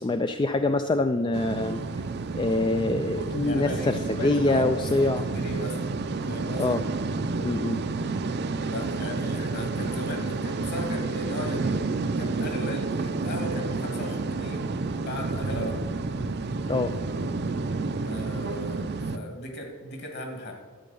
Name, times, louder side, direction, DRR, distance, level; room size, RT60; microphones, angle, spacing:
voice 1, 0.0-1.8 2.3-5.3 6.6-6.8 7.4-7.8 16.7-16.9, left 2 dB, 20° left, 8 dB, 0.3 m, -25 dB
sound 1, 1.3-19.2, right 3 dB, 45° right, 0.5 m, -30 dB
voice 2, 3.4-4.7 5.0-5.9 6.3-6.8 8.6-14.7 15.0-15.8 18.0-20.5, left 1 dB, 50° left, 3 dB, 2.0 m, -36 dB
12.5 x 8.5 x 5.4 m, 1.5 s
head